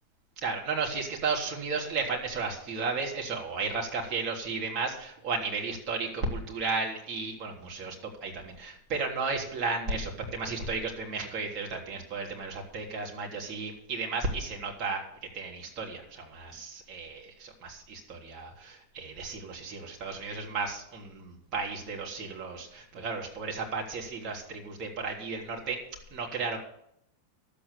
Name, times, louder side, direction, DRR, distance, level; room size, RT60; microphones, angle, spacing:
voice 1, 0.4-7.9 8.2-15.0 15.3-25.8 26.1-26.6, right 4 dB, 35° right, 0 dB, 3.2 m, -34 dB
12.0 x 8.5 x 7.0 m, 0.74 s
figure-of-eight pair, 90°, 0 cm